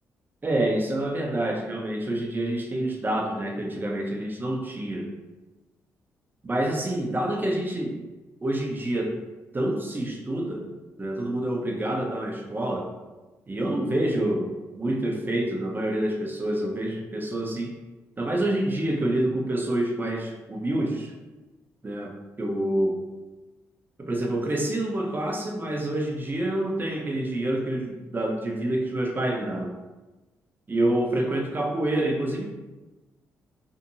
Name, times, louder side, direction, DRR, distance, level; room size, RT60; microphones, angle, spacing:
voice 1, 0.4-5.1 6.4-8.0 8.4-9.2 9.5-10.6 11.0-12.9 13.5-17.8 18.2-21.1 21.8-23.0 24.0-29.8 30.7-32.4, right 1 dB, 25° right, 1 dB, 0.7 m, -27 dB
2.7 x 2.5 x 2.7 m, 1.1 s
hypercardioid pair, 45°, 7 cm